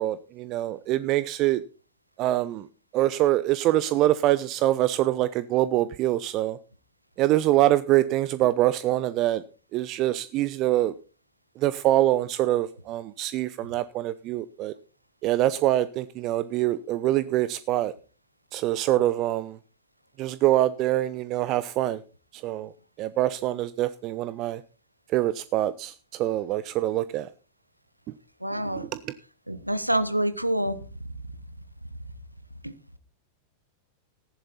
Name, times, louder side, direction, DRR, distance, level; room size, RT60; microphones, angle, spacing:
voice 1, 0.0-1.6 2.2-2.6 2.9-6.6 7.2-9.4 9.7-10.9 11.6-14.7 15.2-17.9 18.5-19.6 20.2-22.0 22.4-22.7 23.0-24.6 25.1-25.9 26.2-27.3, right 14 dB, 40° right, 0.5 m, -24 dB
voice 2, 28.4-28.9 29.5-30.8 32.6-32.7, right 1 dB, 90° right, 1.0 m, -26 dB
14.5 x 11.0 x 4.1 m
figure-of-eight pair, 90°, 0 cm